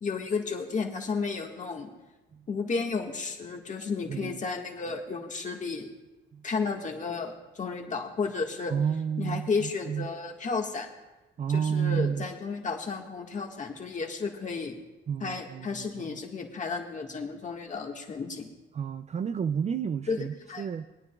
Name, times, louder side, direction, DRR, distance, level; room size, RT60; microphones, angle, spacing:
voice 1, 0.0-1.9 2.5-5.9 6.4-8.7 9.2-10.9 11.5-14.8 15.2-18.5 20.1-20.6, left 4 dB, 40° left, 1 dB, 1.6 m, -33 dB
voice 2, 4.0-4.4 6.3-6.4 8.7-10.1 11.4-12.3 15.1-16.2 18.7-20.9, right 7 dB, 35° right, 12 dB, 0.4 m, -31 dB
21.5 x 9.5 x 2.3 m, 1.1 s
cardioid pair, 90°, 20 cm